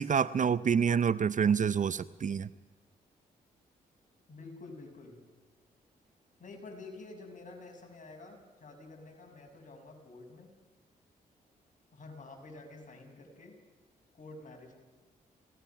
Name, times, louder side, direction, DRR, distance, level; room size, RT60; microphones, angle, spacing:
voice 1, 0.0-2.5, right 7 dB, 45° right, 17 dB, 0.7 m, -27 dB
voice 2, 4.3-5.2 6.4-10.5 11.9-13.6 14.2-14.8, left 3 dB, 45° left, 2 dB, 6.6 m, -49 dB
28.5 x 17.5 x 5.9 m, 1.2 s
supercardioid pair, 50°, 17 cm